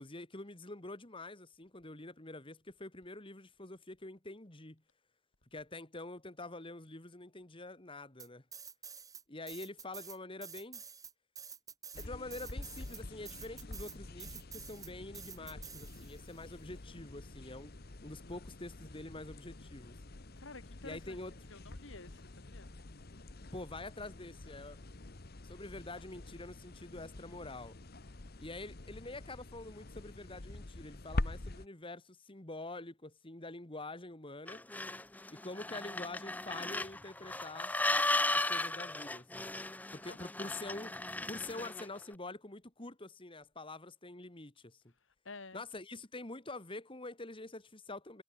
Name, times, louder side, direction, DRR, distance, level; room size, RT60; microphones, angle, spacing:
voice 1, 0.0-4.8 5.5-8.4 9.3-10.8 12.0-17.7 18.0-19.9 20.8-21.3 23.5-24.8 25.4-27.8 28.4-34.6 35.3-37.7 38.3-39.5 39.9-40.9 41.3-44.8 45.5-48.2, left 2 dB, 25° left, 2.2 m, -46 dB
sound 1, 8.2-9.2 9.5-16.3, right 6 dB, 20° right, 4.5 m, -49 dB
sound 2, 11.9-31.7, left 2 dB, 50° left, 1.2 m, -46 dB
voice 2, 20.4-21.2 21.5-22.8 40.0-40.5 45.2-45.6, left 3 dB, 70° left, 2.3 m, -51 dB
sound 3, 34.5-42.0, left 2 dB, 10° left, 0.7 m, -36 dB
head